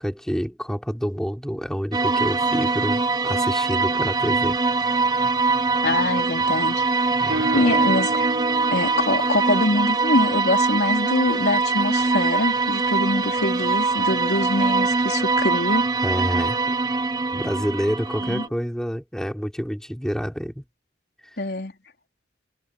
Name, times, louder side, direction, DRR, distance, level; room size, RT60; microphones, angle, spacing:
voice 1, 0.0-4.6 7.2-7.8 16.0-16.6 17.3-20.6, equal, 5° left, 3.9 m, -28 dB
sound 1, 1.9-18.5, right 3 dB, 20° right, 0.8 m, -22 dB
voice 2, 5.8-6.8 7.1-8.3 8.7-15.9 18.3-18.4 21.4-21.7, left 2 dB, 65° left, 3.5 m, -24 dB
Guitar, 7.3-11.0, right 1 dB, 90° right, 7.5 m, -32 dB
head